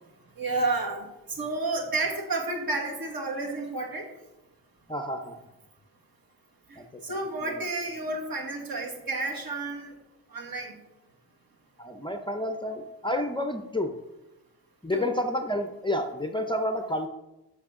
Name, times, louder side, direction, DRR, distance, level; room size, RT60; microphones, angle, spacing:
voice 1, 0.4-4.1 6.7-9.9 10.3-10.8 14.9-15.1, right 3 dB, 60° right, 1 dB, 1.7 m, -31 dB
voice 2, 4.9-5.4 6.8-7.2 7.4-7.6 11.8-13.9 14.8-17.1, left 1 dB, 10° left, 5 dB, 0.5 m, -30 dB
12.0 x 6.2 x 3.6 m, 0.98 s
wide cardioid pair, 175°, 40 cm